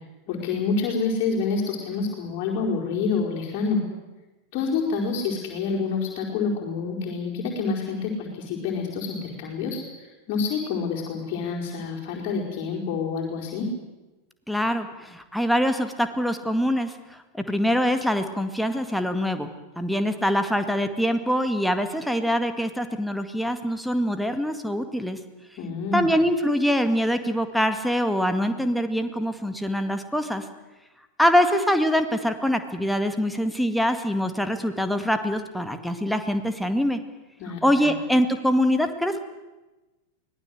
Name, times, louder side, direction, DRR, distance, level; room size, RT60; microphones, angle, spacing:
voice 1, 0.3-3.8 4.5-13.7 25.6-26.0 37.4-37.9, left 4 dB, 40° left, -5 dB, 5.0 m, -28 dB
voice 2, 14.5-25.2 25.9-30.5 31.2-37.0 37.6-39.2, equal, ahead, 7 dB, 2.0 m, -24 dB
24.5 x 19.0 x 8.0 m, 1.1 s
figure-of-eight pair, 90°, 0 cm